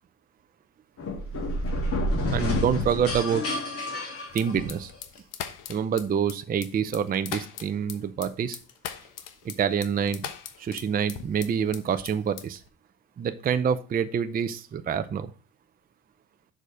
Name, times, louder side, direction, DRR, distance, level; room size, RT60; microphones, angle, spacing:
sound 1, 1.0-5.0, left 1 dB, 40° left, 3.1 m, -29 dB
voice 1, 2.3-3.4 4.3-4.9 5.7-8.6 9.4-10.3 10.6-12.6 13.2-15.3, right 7 dB, 25° right, 10 dB, 0.5 m, -27 dB
sound 2, 4.3-11.8 12.1-12.7, left 9 dB, 60° left, 1.2 m, -39 dB
6.7 x 5.0 x 5.0 m, 0.36 s
cardioid pair, 120°, 35 cm